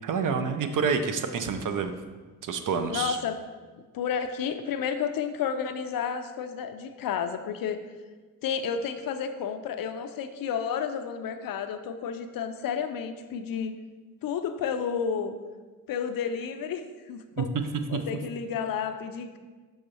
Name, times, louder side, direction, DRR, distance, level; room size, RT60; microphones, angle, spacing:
voice 1, 0.0-1.9 2.4-3.2 17.4-17.6 17.9-18.0, right 5 dB, 45° right, 7 dB, 0.6 m, -28 dB
voice 2, 2.9-3.4 3.9-7.8 8.4-13.7 14.2-15.4 15.9-17.5 17.9-19.4, left 7 dB, 50° left, 8 dB, 0.6 m, -31 dB
6.2 x 5.3 x 3.0 m, 1.3 s
hypercardioid pair, 50°, 46 cm